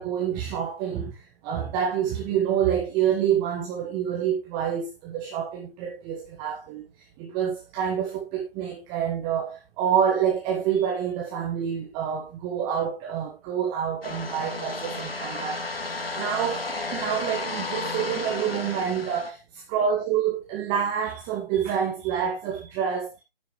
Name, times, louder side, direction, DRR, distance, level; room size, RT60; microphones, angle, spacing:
voice 1, 0.0-6.8 7.2-23.2, right 8 dB, 15° right, 1.2 m, -27 dB
sound 1, 14.0-19.3, left 3 dB, 75° left, 2.6 m, -33 dB
10.0 x 9.9 x 3.1 m
figure-of-eight pair, 140°, 30 cm